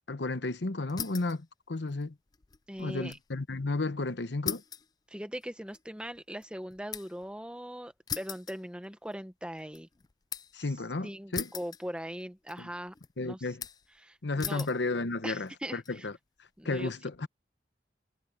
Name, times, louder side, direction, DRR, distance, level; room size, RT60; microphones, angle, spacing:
voice 1, 0.1-2.1 2.8-4.6 10.5-11.5 12.6-12.7 13.2-13.6 14.2-16.1 16.6-17.3, left 2 dB, 90° left, 1.0 m, -33 dB
sound 1, 0.9-1.4 1.8-3.3 3.6-3.7 4.5-7.3 8.1-9.2 9.6-10.6 11.3-12.2 12.5-13.1 13.6-14.0 14.4-14.8 15.5-15.9, left 8 dB, 20° left, 0.4 m, -40 dB
voice 2, 2.7-3.2 5.1-9.9 11.0-12.9 13.2-13.5 14.0-14.7 15.2-16.1 16.6-16.9, equal, 5° right, 1.2 m, -40 dB
head